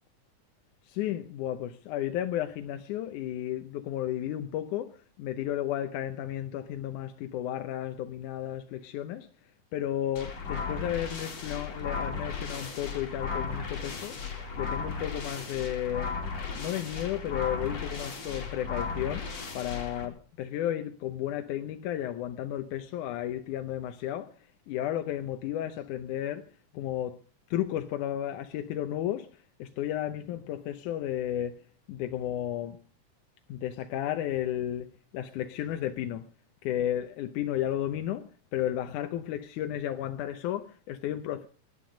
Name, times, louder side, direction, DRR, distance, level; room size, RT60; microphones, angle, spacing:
voice 1, 0.8-9.3 9.7-16.2 16.5-27.2 27.5-32.8 33.5-36.3 36.6-38.2 38.5-41.5, left 11 dB, 90° left, 2.3 m, -33 dB
sound 1, 10.2-20.0, left 5 dB, 60° left, 4.3 m, -36 dB
18.5 x 11.5 x 5.1 m
omnidirectional pair, 3.4 m